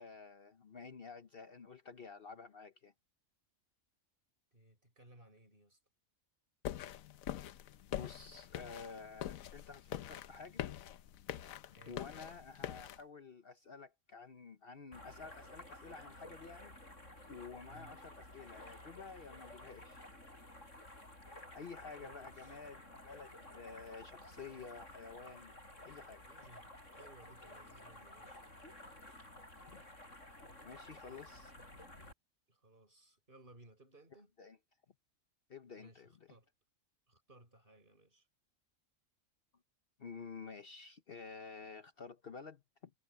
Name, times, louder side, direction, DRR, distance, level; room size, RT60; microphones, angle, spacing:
voice 1, 0.0-2.9 7.9-10.6 11.9-16.7 17.3-20.0 21.5-25.5 25.8-26.2 29.7-29.8 30.6-31.5 34.4-34.6 35.5-36.4 40.0-42.9, left 5 dB, 50° left, 1.1 m, -51 dB
voice 2, 4.5-5.8 11.6-12.0 15.7-15.8 17.7-18.0 22.0-22.6 26.3-28.4 32.5-34.3 35.8-36.5 37.1-38.3, right 2 dB, 40° right, 6.0 m, -61 dB
sound 1, 6.6-13.0, left 11 dB, 90° left, 1.1 m, -44 dB
sound 2, 14.9-32.1, left 1 dB, 65° left, 8.5 m, -54 dB
omnidirectional pair, 1.4 m